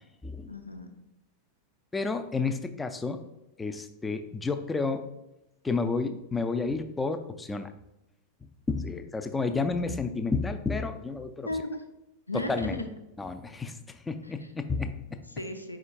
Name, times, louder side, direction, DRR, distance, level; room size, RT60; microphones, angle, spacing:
voice 1, 0.5-0.9 11.4-11.8 12.3-12.8 14.2-14.3 15.3-15.8, left 2 dB, 85° left, 6 dB, 0.4 m, -35 dB
voice 2, 1.9-3.2 3.6-5.0 5.6-7.7 8.7-11.5 12.5-12.8 13.2-13.8 14.1-15.2, left 4 dB, 10° left, 8 dB, 0.3 m, -31 dB
4.9 x 4.3 x 2.5 m, 0.92 s
figure-of-eight pair, 90°, 0 cm